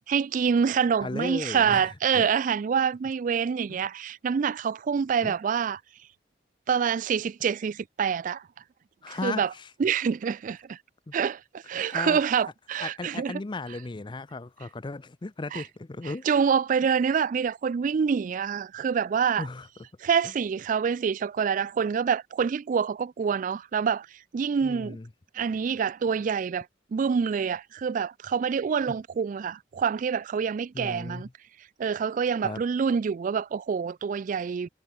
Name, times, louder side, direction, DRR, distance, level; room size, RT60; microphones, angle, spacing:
voice 1, 0.0-5.8 6.7-8.4 9.1-9.5 9.8-10.8 11.1-13.3 15.5-15.6 16.3-19.5 20.0-24.1 24.3-25.0 25.3-26.7 26.9-31.3 31.8-34.7, right 6 dB, 45° right, 0.3 m, -26 dB
voice 2, 1.0-2.3 3.7-3.8 5.2-5.3 9.0-9.7 11.1-11.2 11.9-12.2 12.8-16.3 19.4-19.7 24.6-25.1 30.7-31.3 32.4-32.6, left 3 dB, 25° left, 0.5 m, -36 dB
head